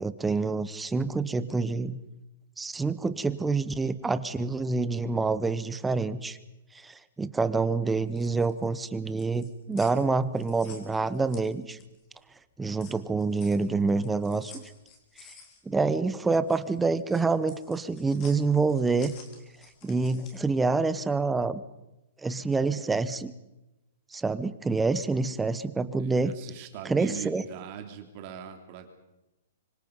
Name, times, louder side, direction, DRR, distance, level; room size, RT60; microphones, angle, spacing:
voice 1, 0.0-2.0 2.6-6.4 6.7-11.8 12.6-14.6 15.6-19.1 19.8-21.6 22.2-23.3 24.1-26.3 26.8-27.5, right 4 dB, 5° right, 13 dB, 0.9 m, -27 dB
sound 1, 7.9-12.1 12.4-20.5, left 5 dB, 25° left, 3.9 m, -52 dB
voice 2, 26.0-28.9, right 8 dB, 35° right, 5 dB, 3.1 m, -41 dB
25.5 x 25.0 x 5.5 m, 0.94 s
hypercardioid pair, 165°, 0 cm